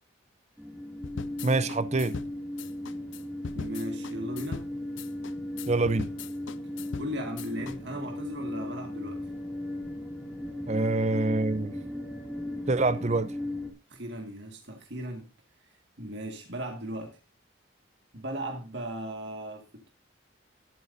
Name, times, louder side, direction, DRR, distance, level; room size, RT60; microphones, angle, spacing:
sound 1, 0.6-13.7, left 1 dB, 5° right, 2.6 m, -37 dB
sound 2, 1.0-7.8, left 5 dB, 85° left, 0.6 m, -40 dB
voice 1, 1.4-2.2 5.7-6.1 10.7-11.7 12.7-13.3, right 3 dB, 35° right, 0.6 m, -26 dB
voice 2, 3.6-4.6 7.0-9.2 13.9-15.3 16.0-17.2 18.1-19.9, equal, 65° right, 2.0 m, -37 dB
19.0 x 9.3 x 2.7 m
head